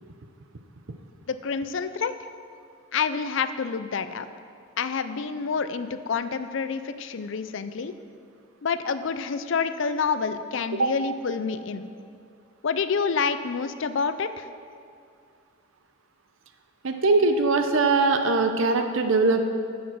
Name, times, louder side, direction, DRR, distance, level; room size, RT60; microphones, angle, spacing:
voice 1, 1.3-2.1 2.9-4.3 4.8-7.9 8.6-11.9 12.6-14.4, left 5 dB, 60° left, 12 dB, 0.4 m, -28 dB
voice 2, 16.8-19.4, right 3 dB, 65° right, 7 dB, 0.7 m, -21 dB
9.9 x 7.3 x 6.2 m, 2.3 s
head